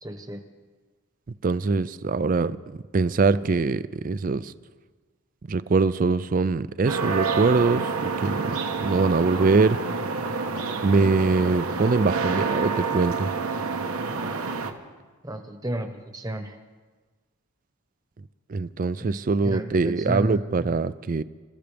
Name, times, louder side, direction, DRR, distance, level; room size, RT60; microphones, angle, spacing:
voice 1, 0.0-0.4 15.2-16.6 19.0-20.7, right 1 dB, 15° right, 6 dB, 1.1 m, -32 dB
voice 2, 1.4-2.6 2.9-4.5 5.5-8.4 8.8-9.8 10.8-13.3 18.5-21.2, right 4 dB, 40° right, 15 dB, 0.4 m, -23 dB
sound 1, 6.9-14.7, right 4 dB, 85° right, 1.2 m, -28 dB
29.0 x 14.5 x 3.4 m, 1.4 s
head